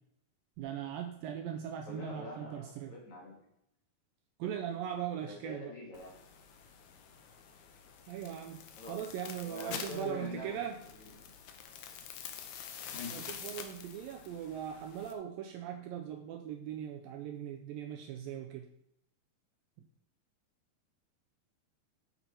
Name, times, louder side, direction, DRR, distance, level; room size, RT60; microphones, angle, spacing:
voice 1, 0.6-2.9 4.4-5.7 8.1-10.8 13.1-18.7, right 9 dB, 80° right, 4 dB, 2.1 m, -40 dB
voice 2, 1.8-3.4 5.3-6.1 8.7-9.0 9.4-10.6 11.0-11.3 12.9-13.2, left 2 dB, 50° left, -2 dB, 3.2 m, -45 dB
sound 1, 5.9-15.1, left 8 dB, 85° left, 1.6 m, -47 dB
8.7 x 7.0 x 4.5 m, 0.76 s
omnidirectional pair, 4.6 m